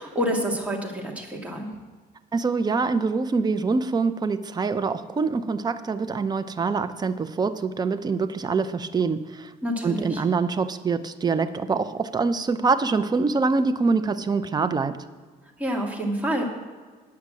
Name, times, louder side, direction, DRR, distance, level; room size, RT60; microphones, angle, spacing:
voice 1, 0.0-1.7 9.6-10.2 15.6-16.4, equal, 10° right, 0 dB, 2.0 m, -28 dB
voice 2, 2.3-9.5 9.8-15.0, right 4 dB, 25° right, 11 dB, 0.6 m, -25 dB
9.6 x 5.8 x 7.6 m, 1.5 s
cardioid pair, 110°, 17 cm